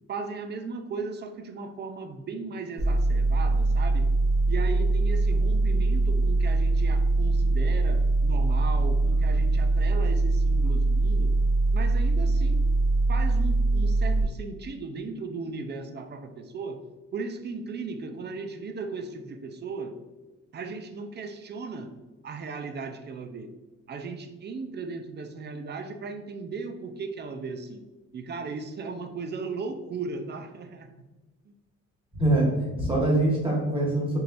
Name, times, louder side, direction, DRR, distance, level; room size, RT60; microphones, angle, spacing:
voice 1, 0.1-4.1 4.5-11.3 11.7-12.6 13.1-16.8 17.1-20.0 20.5-21.9 22.2-23.5 23.9-27.8 28.1-30.9 31.5-31.6, right 4 dB, 35° right, 8 dB, 0.5 m, -36 dB
sound 1, 2.8-14.2, right 2 dB, 75° right, 1.4 m, -23 dB
voice 2, 32.1-34.2, right 1 dB, 15° right, -3 dB, 1.4 m, -24 dB
4.4 x 3.2 x 2.5 m, 1.1 s
cardioid pair, 90°, 30 cm